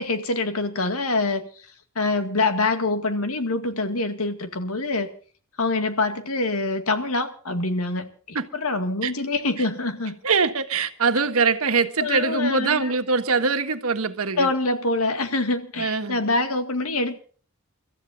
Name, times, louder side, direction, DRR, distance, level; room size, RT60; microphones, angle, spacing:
voice 1, 0.0-1.4 2.0-5.1 5.6-10.1 12.0-12.9 14.4-17.2, left 2 dB, 85° left, 2.1 m, -25 dB
voice 2, 10.2-14.5 15.8-16.2, right 4 dB, 85° right, 1.5 m, -23 dB
30.0 x 14.0 x 2.6 m
head